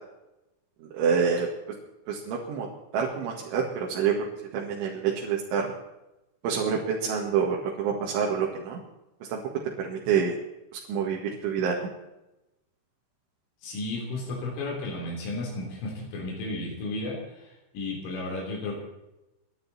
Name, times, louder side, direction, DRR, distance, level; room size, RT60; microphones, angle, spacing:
voice 1, 0.9-1.5 2.1-2.7 2.9-4.1 4.5-5.7 6.4-8.8 9.3-9.4 9.8-10.3 10.9-11.9, right 6 dB, 75° right, -1 dB, 4.3 m, -27 dB
voice 2, 13.6-18.8, left 2 dB, 90° left, -2 dB, 6.2 m, -33 dB
29.0 x 12.0 x 4.3 m, 0.95 s
omnidirectional pair, 5.5 m